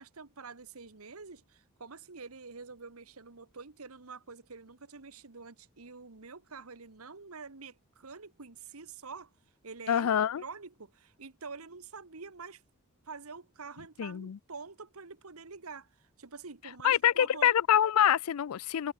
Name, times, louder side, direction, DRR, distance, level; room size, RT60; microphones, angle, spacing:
voice 1, 0.0-9.3 9.6-10.1 10.4-12.6 13.0-17.5, right 4 dB, 85° right, 1.5 m, -47 dB
voice 2, 9.9-10.4 14.0-14.4 16.8-18.9, left 10 dB, 85° left, 0.4 m, -25 dB
head